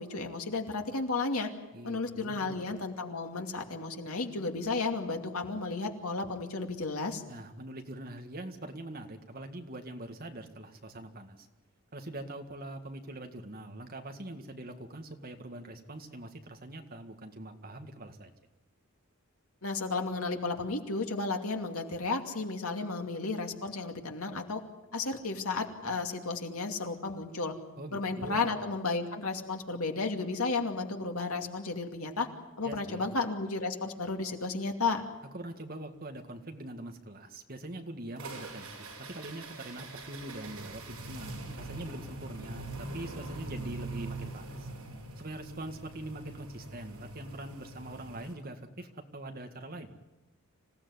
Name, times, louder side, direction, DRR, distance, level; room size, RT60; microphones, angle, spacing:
voice 1, 0.0-1.5 1.8-7.2 19.6-24.6 24.9-27.5 27.9-32.3 32.6-35.0, left 3 dB, 80° left, 4 dB, 2.5 m, -33 dB
voice 2, 1.7-2.8 7.3-11.5 11.9-18.3 27.8-28.5 32.6-33.1 35.3-44.7 45.2-49.9, right 1 dB, 40° right, 5 dB, 2.0 m, -43 dB
sound 1, 38.2-48.3, right 2 dB, 75° right, 6.7 m, -43 dB
26.5 x 16.5 x 9.7 m, 1.1 s
head